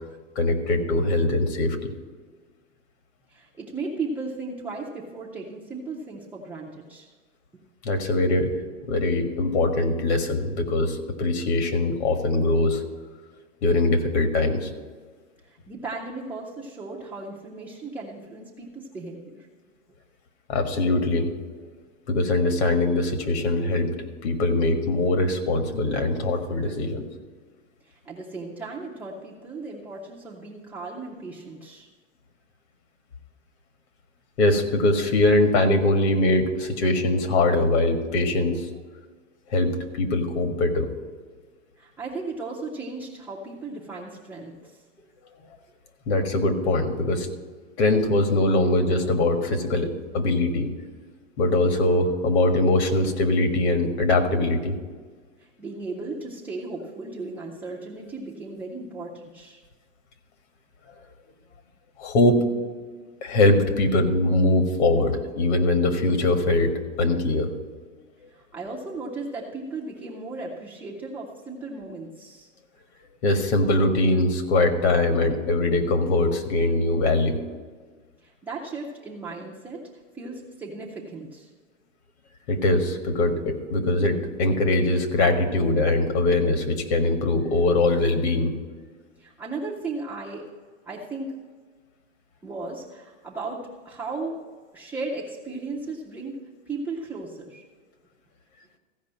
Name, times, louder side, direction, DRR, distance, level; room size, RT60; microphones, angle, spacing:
voice 1, 0.3-1.9 7.8-8.5 8.8-12.8 13.6-14.7 20.5-21.3 22.1-23.9 24.2-27.0 34.4-38.7 39.5-40.9 46.1-47.3 47.8-50.7 51.4-54.8 62.0-62.4 63.2-66.7 67.0-67.5 73.2-77.4 82.5-88.5, left 2 dB, 55° left, 7 dB, 1.7 m, -22 dB
voice 2, 3.3-7.1 15.4-19.5 27.8-31.9 41.8-44.8 55.4-59.6 68.3-72.5 78.2-79.9 80.1-81.5 89.2-90.5 90.9-91.4 92.4-97.6, right 3 dB, 5° right, -6 dB, 0.4 m, -36 dB
15.0 x 5.2 x 7.4 m, 1.5 s
supercardioid pair, 155°, 38 cm